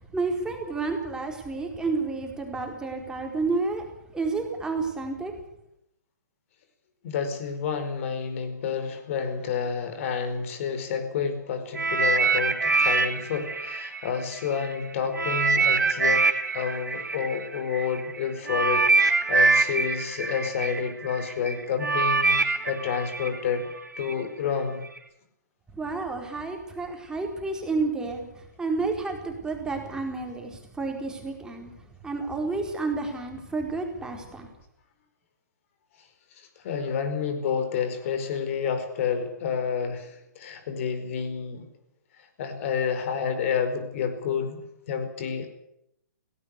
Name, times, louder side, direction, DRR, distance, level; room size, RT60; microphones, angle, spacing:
voice 1, 0.0-3.8 4.1-5.3 25.7-34.5, right 3 dB, 5° right, 2 dB, 4.4 m, -30 dB
voice 2, 7.0-16.3 16.5-23.7 24.0-24.8 36.4-41.7 42.4-44.6 44.9-45.5, left 6 dB, 45° left, 9 dB, 4.8 m, -29 dB
sound 1, 11.7-14.7 15.1-24.1 24.9-25.0, right 4 dB, 85° right, 2.6 m, -24 dB
18.0 x 17.5 x 10.0 m, 0.79 s
hypercardioid pair, 130°, 10 cm